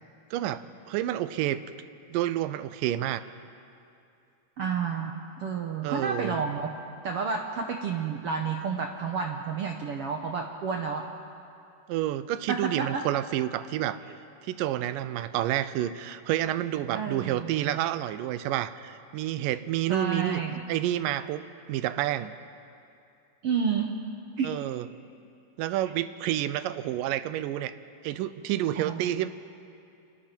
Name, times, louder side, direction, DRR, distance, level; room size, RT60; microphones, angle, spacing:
voice 1, 0.3-1.6 2.1-3.2 5.8-6.4 11.9-14.0 14.4-20.4 20.7-21.4 21.7-22.3 24.4-24.9 25.6-27.7 28.0-29.3, right 13 dB, 85° right, 13 dB, 2.3 m, -29 dB
voice 2, 4.6-5.1 5.4-6.7 7.0-11.1 12.5-13.0 16.9-17.8 19.9-20.6 23.4-23.9 24.4-24.5 28.8-29.0, right 6 dB, 65° right, 3 dB, 1.5 m, -30 dB
29.5 x 24.5 x 4.5 m, 2.6 s
omnidirectional pair, 3.8 m